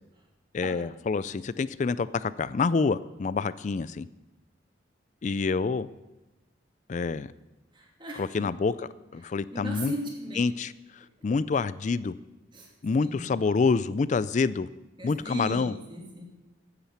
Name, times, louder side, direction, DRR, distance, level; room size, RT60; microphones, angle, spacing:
voice 1, 0.5-4.1 5.2-5.9 6.9-7.3 8.1-9.9 10.4-10.7 11.2-12.1 12.8-14.7 15.0-15.8, left 4 dB, 40° left, 17 dB, 0.3 m, -27 dB
voice 2, 7.7-8.2 9.5-10.4 12.5-12.7 13.0-13.3 15.0-16.2, equal, 25° right, -2 dB, 2.6 m, -37 dB
9.8 x 8.9 x 7.3 m, 1.1 s
head